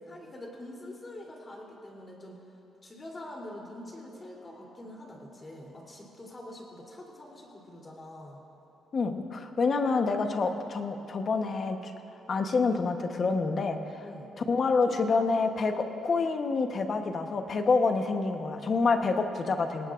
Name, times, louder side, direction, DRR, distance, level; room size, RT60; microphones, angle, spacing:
voice 1, 0.1-2.4 2.8-8.4 14.0-14.3, left 1 dB, 25° left, -2 dB, 3.3 m, -45 dB
voice 2, 8.9-11.9 12.3-14.0 14.5-19.9, left 4 dB, 40° left, 5 dB, 1.1 m, -27 dB
27.0 x 18.5 x 2.6 m, 3.0 s
cardioid pair, 140°, 0 cm